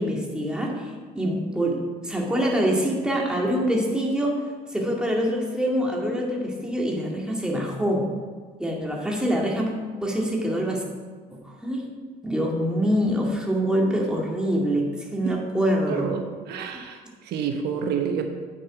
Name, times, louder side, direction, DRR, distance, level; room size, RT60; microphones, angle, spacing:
voice 1, 0.0-4.5 4.7-8.1 8.6-9.7 10.0-10.8 11.3-11.8 12.2-16.1, equal, 5° right, -2 dB, 2.1 m, -25 dB
voice 2, 15.9-16.2 16.5-18.3, right 7 dB, 75° right, 5 dB, 1.0 m, -28 dB
9.0 x 7.5 x 5.0 m, 1.5 s
cardioid pair, 110°, 17 cm